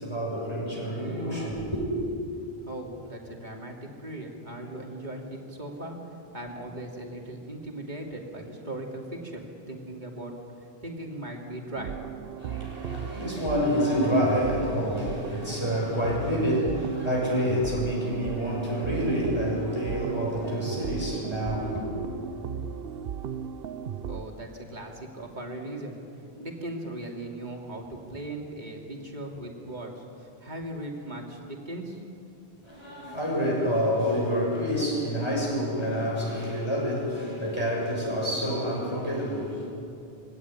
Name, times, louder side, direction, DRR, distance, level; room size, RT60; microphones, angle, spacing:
voice 1, 0.0-1.8 12.4-21.8 32.6-39.7, equal, 25° left, -3 dB, 6.7 m, -28 dB
voice 2, 2.3-6.0 6.3-10.3 10.8-12.0 24.0-26.0 26.4-30.0 30.4-32.0, right 1 dB, 45° right, 0 dB, 3.0 m, -38 dB
sound 1, 11.8-24.2, right 8 dB, 70° right, 0.9 m, -36 dB
22.5 x 16.5 x 10.0 m, 2.7 s
omnidirectional pair, 1.0 m